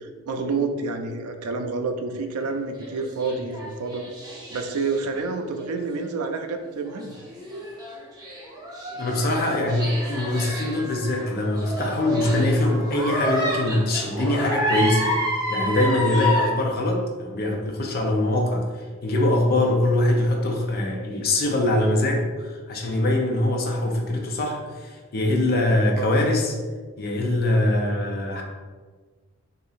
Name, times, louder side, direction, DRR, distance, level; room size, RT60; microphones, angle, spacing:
voice 1, 0.0-4.1 4.5-7.2 26.0-26.1, right 4 dB, 85° right, 6 dB, 0.4 m, -28 dB
sound 1, 2.8-5.2 5.6-5.7 6.8-16.5, equal, 20° right, 0.7 m, -29 dB
voice 2, 9.0-15.1 15.5-18.7 19.0-26.5 27.0-28.4, left 1 dB, 40° left, 1 dB, 0.5 m, -23 dB
2.8 x 2.6 x 4.0 m, 1.4 s
head